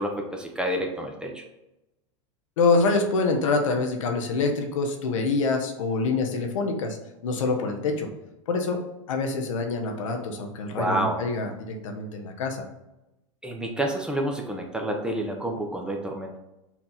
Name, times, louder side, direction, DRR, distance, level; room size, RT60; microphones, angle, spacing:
voice 1, 0.0-1.4 10.8-11.2 13.4-16.4, right 1 dB, 5° right, 2 dB, 0.7 m, -29 dB
voice 2, 2.6-7.0 7.2-8.1 8.5-8.8 9.1-12.6, left 3 dB, 85° left, 3 dB, 0.9 m, -25 dB
4.4 x 2.8 x 3.8 m, 0.93 s
hypercardioid pair, 105°, 16 cm